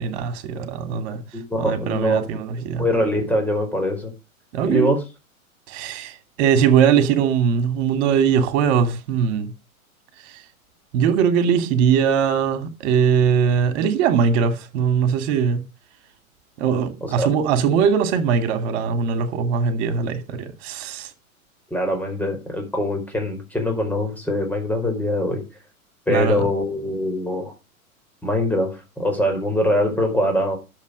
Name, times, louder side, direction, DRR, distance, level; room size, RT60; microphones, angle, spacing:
voice 1, 0.0-1.2 1.6-2.8 4.5-4.9 5.7-9.5 10.9-15.6 16.6-21.1 26.1-26.4, right 7 dB, 50° right, 2.7 m, -20 dB
voice 2, 1.3-2.4 2.8-4.1 4.6-5.0 17.2-17.3 21.7-25.4 26.1-27.5 28.2-30.6, left 1 dB, 5° left, 4.8 m, -23 dB
11.5 x 7.6 x 5.3 m
hypercardioid pair, 105°, 43 cm